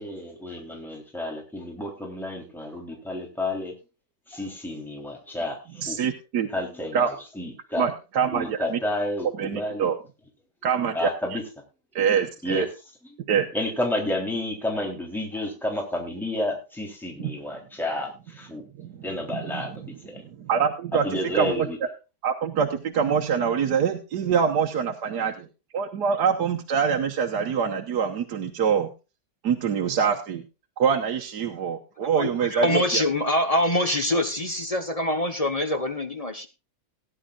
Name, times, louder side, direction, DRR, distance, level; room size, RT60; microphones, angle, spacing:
voice 1, 0.0-3.7 4.3-6.0 6.5-7.8 8.3-9.9 11.0-11.4 12.4-12.6 13.5-18.6 19.0-19.9 21.0-21.8, left 1 dB, ahead, 0 dB, 3.6 m, -30 dB
voice 2, 5.8-6.5 6.9-7.1 7.8-8.8 9.4-10.0 10.6-11.4 11.9-12.7 13.3-13.5 17.2-17.3 18.8-19.0 19.3-20.0 20.2-21.7 22.2-25.5 25.7-28.9 29.4-30.4 30.8-33.0, right 7 dB, 70° right, 2 dB, 1.6 m, -25 dB
voice 3, 32.1-36.5, left 1 dB, 25° left, 6 dB, 1.0 m, -25 dB
19.0 x 10.0 x 2.5 m, 0.30 s
omnidirectional pair, 1.9 m